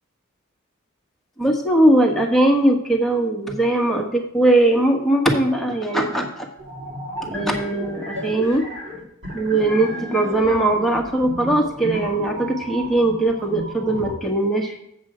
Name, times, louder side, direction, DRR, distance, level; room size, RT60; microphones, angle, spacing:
voice 1, 1.4-6.5 7.3-8.6 9.3-14.8, right 1 dB, ahead, 0 dB, 1.3 m, -20 dB
sound 1, 6.6-14.1, right 1 dB, 60° right, 3.2 m, -33 dB
7.5 x 7.3 x 4.9 m, 0.77 s
head